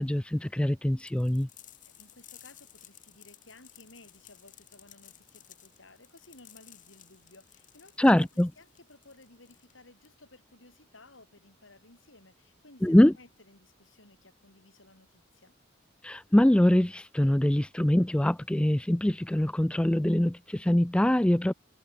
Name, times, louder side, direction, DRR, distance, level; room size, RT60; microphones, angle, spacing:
voice 1, 0.0-1.5 8.0-8.5 12.8-13.1 16.0-21.5, left 1 dB, 5° left, 0.3 m, -23 dB
sound 1, 1.0-10.4, left 12 dB, 45° left, 2.7 m, -56 dB
voice 2, 1.8-15.5, left 2 dB, 85° left, 6.2 m, -56 dB
head